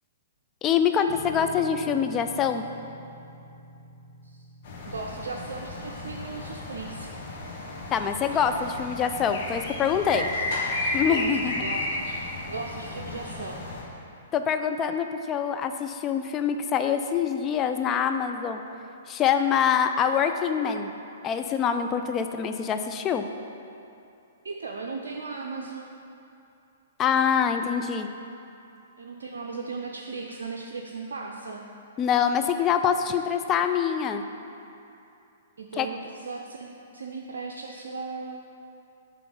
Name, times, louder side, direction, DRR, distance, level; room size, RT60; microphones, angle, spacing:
voice 1, 0.6-2.6 7.9-10.3 10.9-11.5 14.3-18.6 19.1-20.9 21.2-23.3 27.0-28.1 32.0-34.2 35.8-35.9, left 7 dB, 25° left, 7 dB, 0.4 m, -25 dB
sound 1, 1.1-13.6, left 1 dB, 20° right, 1.2 m, -49 dB
sound 2, 4.6-13.8, left 2 dB, 50° left, 1.2 m, -33 dB
voice 2, 4.9-7.1 10.1-10.3 11.0-11.3 11.6-13.7 24.4-25.9 29.0-31.6 35.6-38.5, right 4 dB, 75° right, -1 dB, 0.5 m, -37 dB
7.6 x 3.1 x 5.5 m, 2.7 s
hypercardioid pair, 120°, 0 cm